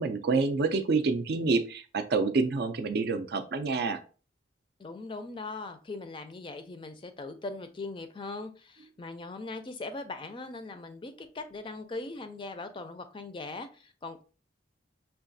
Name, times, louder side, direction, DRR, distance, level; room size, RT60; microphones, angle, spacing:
voice 1, 0.0-4.0, right 4 dB, 55° right, 9 dB, 0.4 m, -27 dB
voice 2, 4.8-14.2, left 3 dB, 25° left, 8 dB, 0.4 m, -40 dB
5.8 x 2.3 x 2.6 m, 0.37 s
head